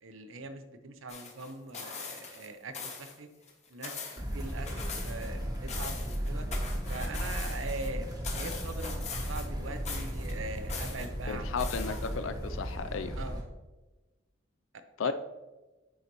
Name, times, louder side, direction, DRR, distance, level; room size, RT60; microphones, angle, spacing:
voice 1, 0.0-3.3 3.7-6.5 6.9-11.7 13.2-13.4 15.0-15.1, right 2 dB, 80° right, 8 dB, 0.7 m, -42 dB
sound 1, 1.1-2.5 2.7-3.2 3.5-5.3 5.5-7.9 8.2-9.6 9.8-11.1 11.6-12.3 12.7-12.8, left 4 dB, 35° left, 0.9 m, -41 dB
sound 2, 4.2-13.4, equal, 20° right, 0.9 m, -35 dB
voice 2, 11.3-13.2 15.0-15.1, left 5 dB, 75° left, 11 dB, 0.4 m, -34 dB
9.6 x 4.0 x 3.0 m, 1.2 s
head